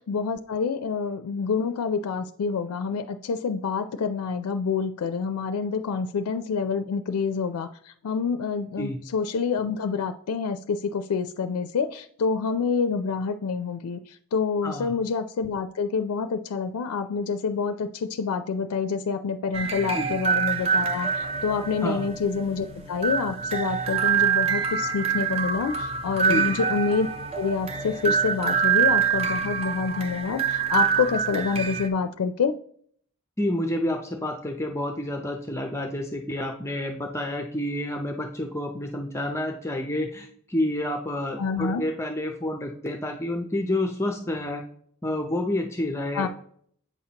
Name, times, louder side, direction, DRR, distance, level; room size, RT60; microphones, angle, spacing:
voice 1, 0.1-27.1 27.4-32.5 41.4-41.8 46.1-46.3, left 5 dB, 90° left, 9 dB, 0.4 m, -27 dB
voice 2, 14.6-14.9 19.9-20.1 21.8-22.1 26.3-26.5 33.4-44.6 45.0-46.3, left 1 dB, 10° left, 4 dB, 0.5 m, -29 dB
sound 1, 19.5-31.9, right 6 dB, 25° right, 0.6 m, -26 dB
8.1 x 5.7 x 2.8 m, 0.62 s
head